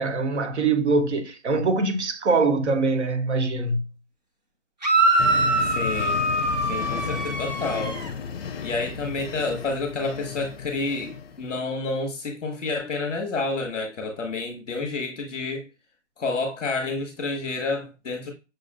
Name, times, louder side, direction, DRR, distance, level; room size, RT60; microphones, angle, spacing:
voice 1, 0.0-3.8, right 3 dB, 65° right, 1.0 m, -23 dB
sound 1, 4.8-8.1, right 2 dB, 35° right, 0.5 m, -23 dB
sound 2, 5.2-11.6, left 6 dB, 55° left, 0.5 m, -34 dB
voice 2, 5.6-6.2 6.7-8.0 8.4-15.7 16.2-18.3, left 3 dB, 5° left, 0.6 m, -29 dB
6.2 x 2.5 x 2.5 m
hypercardioid pair, 175°, 36 cm